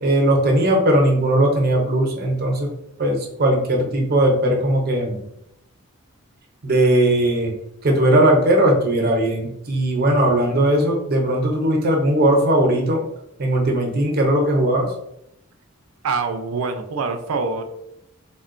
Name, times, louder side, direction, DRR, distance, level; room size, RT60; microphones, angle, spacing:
voice 1, 0.0-2.7 3.0-5.2 6.6-7.5 7.8-13.0 13.4-14.9, right 1 dB, 45° right, 1 dB, 0.6 m, -18 dB
voice 2, 16.0-17.6, right 4 dB, 90° right, 6 dB, 0.4 m, -25 dB
3.6 x 2.1 x 2.5 m, 0.80 s
head